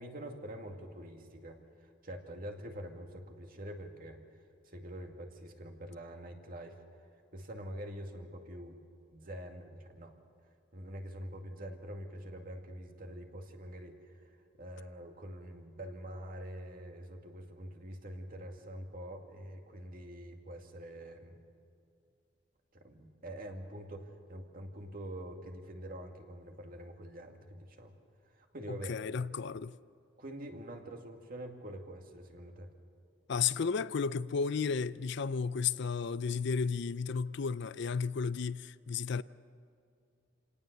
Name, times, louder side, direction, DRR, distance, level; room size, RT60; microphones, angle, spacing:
voice 1, 0.0-4.2 4.6-8.8 9.1-10.1 10.7-14.3 14.6-21.4 22.7-27.9 28.3-29.0 30.2-32.7, right 1 dB, 45° right, 2.2 m, -45 dB
voice 2, 28.7-29.8 33.3-39.2, left 5 dB, 60° left, 0.5 m, -33 dB
27.5 x 18.5 x 6.8 m
head